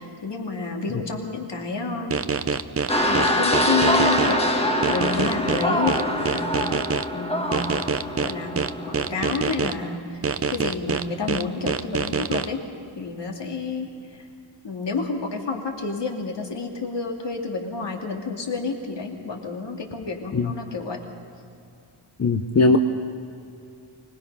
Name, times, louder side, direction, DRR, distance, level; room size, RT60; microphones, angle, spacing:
voice 1, 0.0-2.2 3.0-6.7 7.1-7.7 8.2-10.2 10.5-12.6 13.0-14.3 14.6-21.0, left 4 dB, 55° left, 1 dB, 2.5 m, -29 dB
sound 1, 2.1-4.3 4.8-7.0 7.5-9.7 10.2-12.5, right 5 dB, 30° right, 0.5 m, -25 dB
sound 2, 2.9-10.0, left 1 dB, 10° left, 1.4 m, -25 dB
voice 2, 22.2-22.8, left 3 dB, 30° left, 5 dB, 0.7 m, -19 dB
24.5 x 20.0 x 5.5 m, 2.6 s
wide cardioid pair, 170°, 50 cm